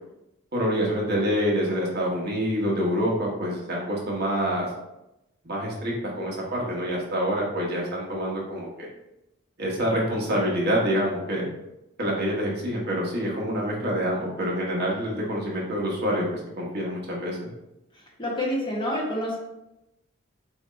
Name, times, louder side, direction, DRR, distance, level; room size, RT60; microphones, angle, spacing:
voice 1, 0.5-4.7 5.4-8.9 9.6-11.5 12.0-16.3 16.6-17.5, equal, 50° right, -3 dB, 1.1 m, -26 dB
voice 2, 17.9-19.4, left 1 dB, 25° left, -4 dB, 1.1 m, -28 dB
6.0 x 2.5 x 3.1 m, 0.89 s
head